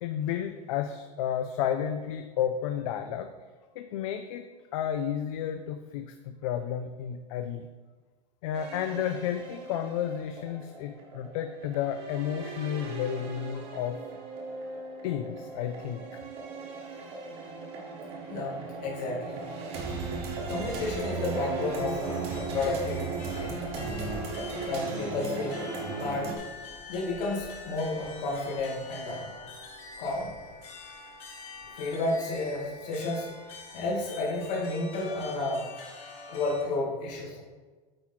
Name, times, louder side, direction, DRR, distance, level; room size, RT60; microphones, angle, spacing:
voice 1, 0.0-3.3 3.8-4.4 4.7-7.6 8.4-14.0 15.0-16.0, left 9 dB, 55° left, 8 dB, 0.4 m, -32 dB
sound 1, 8.5-26.4, right 3 dB, 30° right, 1.0 m, -37 dB
voice 2, 18.3-19.4 20.5-23.6 24.7-25.7 26.0-26.4 26.9-29.3 30.0-30.3 31.8-33.3 33.7-35.7 36.3-37.4, left 2 dB, 80° left, -4 dB, 1.9 m, -32 dB
sound 2, 21.6-36.6, left 4 dB, 30° left, 1.3 m, -46 dB
8.7 x 4.4 x 4.0 m, 1.4 s
supercardioid pair, 175°, 21 cm